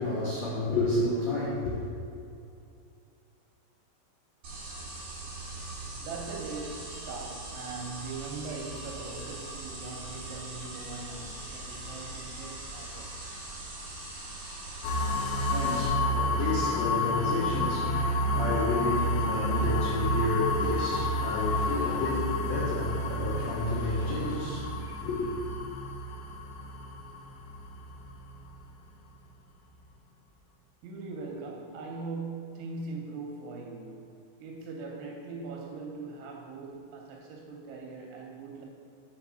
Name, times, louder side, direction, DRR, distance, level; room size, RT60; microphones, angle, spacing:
voice 1, 0.0-1.8 15.0-25.3, left 2 dB, 55° left, -13 dB, 2.0 m, -31 dB
sound 1, 4.4-15.9, right 2 dB, 50° right, 2.6 m, -41 dB
voice 2, 6.0-13.2 30.8-34.1 34.4-38.7, right 3 dB, 80° right, -1 dB, 2.9 m, -40 dB
sound 2, 14.8-28.6, left 1 dB, 85° left, 2.7 m, -30 dB
5.9 x 5.2 x 6.0 m, 2.6 s
omnidirectional pair, 5.8 m